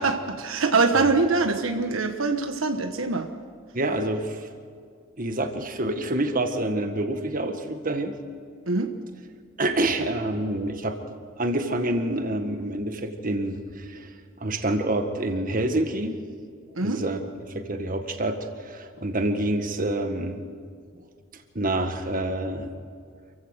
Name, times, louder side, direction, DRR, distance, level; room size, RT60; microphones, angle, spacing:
voice 1, 0.0-3.3 8.7-8.9 16.7-17.0, right 3 dB, 75° right, 6 dB, 1.3 m, -24 dB
voice 2, 3.7-4.5 5.2-8.1 9.6-11.0 11.4-14.1 14.4-16.2 16.8-17.3 17.5-20.4 21.5-22.7, right 1 dB, 40° right, 6 dB, 1.7 m, -27 dB
28.0 x 15.5 x 6.5 m, 2.2 s
head